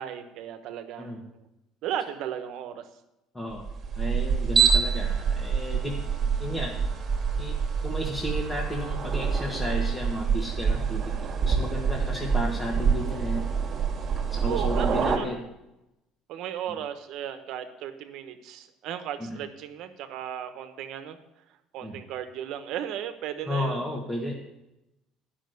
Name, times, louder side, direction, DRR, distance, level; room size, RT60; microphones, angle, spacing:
voice 1, 0.0-1.5 1.8-2.8 14.4-15.4 16.3-21.2 21.7-24.0, right 10 dB, 70° right, 8 dB, 1.1 m, -35 dB
sound 1, 3.6-15.2, right 6 dB, 40° right, 2.1 m, -26 dB
voice 2, 4.0-6.0 6.4-6.7 7.4-7.6 7.8-11.0 11.5-13.4 14.3-15.4 19.3-19.4 21.8-22.0 23.5-24.3, left 1 dB, 15° left, -3 dB, 1.8 m, -33 dB
10.0 x 6.2 x 7.9 m, 0.91 s
supercardioid pair, 100°, 0 cm